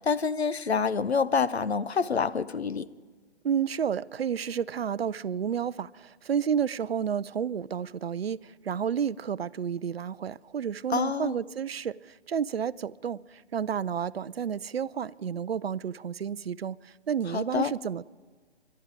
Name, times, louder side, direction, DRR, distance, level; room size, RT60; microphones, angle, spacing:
voice 1, 0.0-2.9 10.9-11.4 17.3-17.7, left 5 dB, 75° left, 0.7 m, -27 dB
voice 2, 3.4-18.1, right 8 dB, 70° right, 0.5 m, -31 dB
22.0 x 11.5 x 4.9 m
figure-of-eight pair, 135°, 32 cm